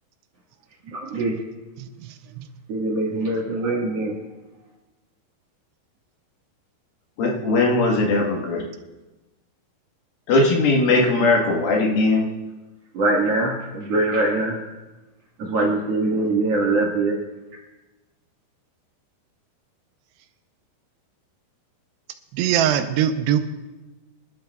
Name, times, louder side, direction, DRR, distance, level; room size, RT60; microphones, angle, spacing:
voice 1, 0.8-1.4 2.7-4.2 12.9-14.6 15.4-17.2, right 2 dB, 50° right, -3 dB, 2.0 m, -23 dB
voice 2, 7.2-8.6 10.3-12.3, left 2 dB, 65° left, 0 dB, 3.0 m, -19 dB
voice 3, 22.3-23.4, right 10 dB, 85° right, 8 dB, 2.8 m, -21 dB
25.5 x 12.0 x 2.3 m, 1.1 s
omnidirectional pair, 4.9 m